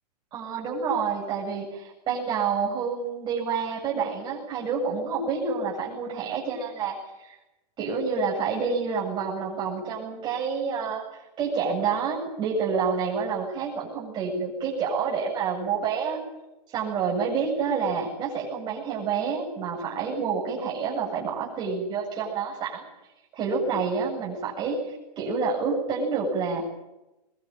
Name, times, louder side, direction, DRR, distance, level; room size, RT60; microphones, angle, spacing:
voice 1, 0.3-7.4 7.8-16.2 16.7-22.9 23.3-26.7, right 5 dB, 20° right, -4 dB, 7.9 m, -28 dB
23.5 x 21.5 x 9.0 m, 0.95 s
hypercardioid pair, 160°, 21 cm